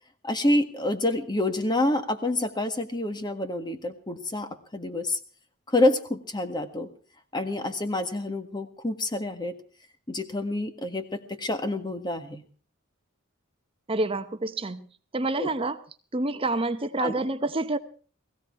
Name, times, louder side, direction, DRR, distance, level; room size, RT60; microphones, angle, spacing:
voice 1, 0.2-5.2 5.7-6.9 7.3-9.5 10.1-12.4 15.4-15.5 17.0-17.1, left 1 dB, 20° left, 1.6 m, -27 dB
voice 2, 13.9-14.9 15.1-15.8 16.1-17.8, right 2 dB, 25° right, 0.8 m, -28 dB
19.5 x 15.0 x 4.7 m
head